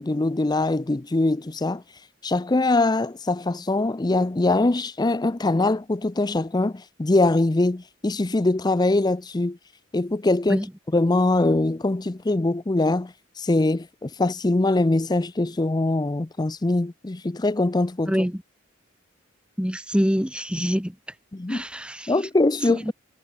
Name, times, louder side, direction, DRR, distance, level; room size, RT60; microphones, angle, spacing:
voice 1, 0.0-1.8 2.2-9.6 9.9-10.6 10.9-18.1 20.6-20.7 21.3-21.6 22.1-22.9, left 2 dB, 20° left, 0.5 m, -22 dB
voice 2, 18.1-18.4 19.6-20.9 21.5-22.1 22.7-22.9, equal, 5° right, 2.6 m, -25 dB
head